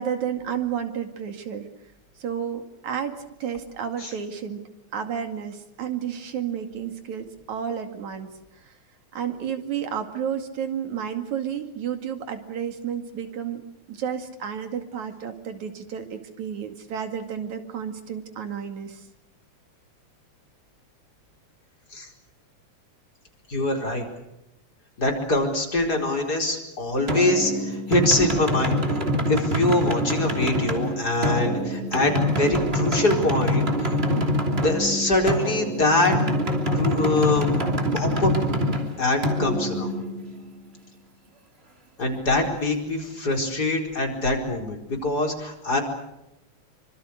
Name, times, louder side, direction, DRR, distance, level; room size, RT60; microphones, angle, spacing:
voice 1, 0.0-1.7 2.2-4.6 4.9-8.7 9.1-13.6 13.9-19.1, right 8 dB, 80° right, 7 dB, 3.6 m, -31 dB
voice 2, 23.5-24.1 25.0-28.8 29.3-34.0 34.6-36.2 36.7-37.6 37.9-38.3 39.0-39.9 42.0-45.8, left 2 dB, 30° left, 2 dB, 5.0 m, -24 dB
sound 1, 27.1-40.6, equal, 20° right, 3.0 m, -25 dB
27.0 x 25.5 x 6.5 m, 0.89 s
omnidirectional pair, 3.3 m